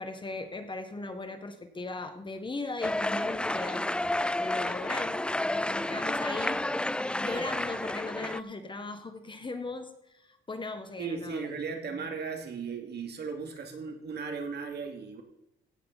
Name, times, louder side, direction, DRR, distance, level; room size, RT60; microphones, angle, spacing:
voice 1, 0.0-11.4 11.9-12.0, left 3 dB, 25° left, 8 dB, 1.6 m, -38 dB
sound 1, 2.8-8.4, left 1 dB, 5° left, 0.3 m, -30 dB
voice 2, 11.0-15.2, right 5 dB, 55° right, 4 dB, 2.5 m, -36 dB
16.5 x 8.5 x 4.2 m, 0.84 s
cardioid pair, 90°, 20 cm